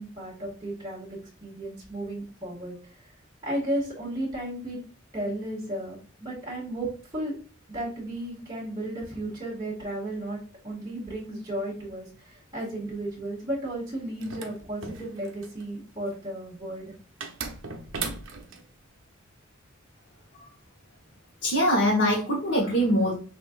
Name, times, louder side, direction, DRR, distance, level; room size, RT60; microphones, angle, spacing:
voice 1, 0.0-2.8 3.4-4.8 5.1-7.3 7.7-16.9, right 1 dB, 20° right, -7 dB, 1.9 m, -34 dB
sound 1, 14.2-15.6 17.2-18.6, right 5 dB, 70° right, 0.7 m, -36 dB
voice 2, 21.4-23.1, equal, 60° left, -5 dB, 1.0 m, -23 dB
6.1 x 2.6 x 2.4 m, 0.39 s
head